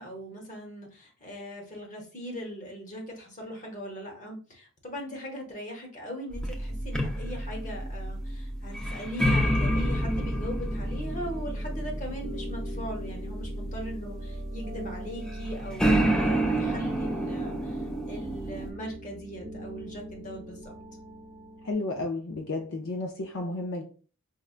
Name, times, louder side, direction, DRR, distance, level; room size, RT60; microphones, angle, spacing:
voice 1, 0.0-20.7, equal, 35° left, 0.9 m, -40 dB
sound 1, 6.3-18.7, right 1 dB, 5° left, 0.4 m, -29 dB
sound 2, 9.6-21.7, equal, 40° right, 0.7 m, -43 dB
voice 2, 21.6-23.8, left 2 dB, 65° left, 0.5 m, -32 dB
4.9 x 2.2 x 2.4 m
head